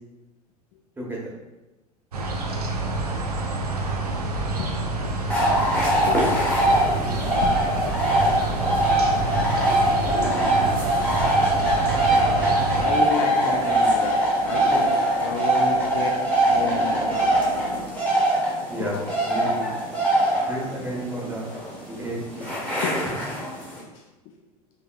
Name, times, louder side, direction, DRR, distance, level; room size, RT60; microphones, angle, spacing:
voice 1, 1.0-1.3 18.7-19.0 19.3-19.7 20.5-21.5 21.9-22.8, right 1 dB, 10° right, -5 dB, 1.4 m, -32 dB
sound 1, 2.1-12.9, right 2 dB, 75° right, 0.6 m, -28 dB
sound 2, 5.0-17.9, equal, 85° left, 0.5 m, -38 dB
sound 3, 5.3-23.8, right 1 dB, 5° left, 1.5 m, -22 dB
voice 2, 7.4-8.8 9.3-9.5 12.8-14.9 15.2-16.2 16.5-17.4 18.8-18.9 22.8-23.2 23.9-24.0, left 6 dB, 45° left, 1 dB, 0.6 m, -32 dB
5.4 x 3.5 x 2.4 m, 1.1 s
figure-of-eight pair, 75°, 20 cm